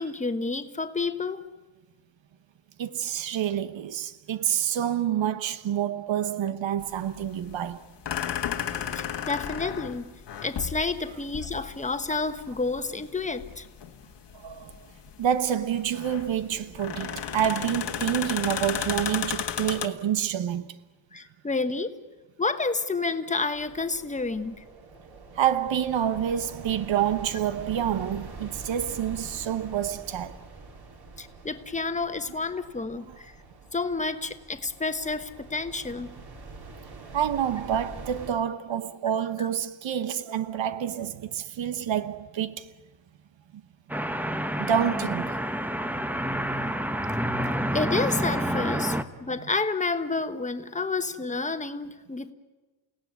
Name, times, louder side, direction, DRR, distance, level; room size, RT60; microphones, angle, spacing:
voice 1, 0.0-1.5 9.0-10.1 10.4-13.7 21.1-21.9 22.4-24.6 31.2-33.3 33.7-36.1 39.4-39.5 47.7-52.3, left 3 dB, 15° left, 1.2 m, -30 dB
voice 2, 2.8-7.8 14.3-14.9 15.2-20.7 25.3-30.4 33.0-33.2 37.1-42.7 43.5-43.6 44.6-45.5, right 9 dB, 85° right, 1.1 m, -28 dB
sound 1, 6.8-19.9, left 9 dB, 70° left, 1.6 m, -34 dB
sound 2, 23.5-38.3, right 3 dB, 55° right, 3.8 m, -45 dB
sound 3, 43.9-49.0, equal, 5° right, 0.8 m, -28 dB
29.5 x 17.0 x 9.4 m
wide cardioid pair, 150°, 44 cm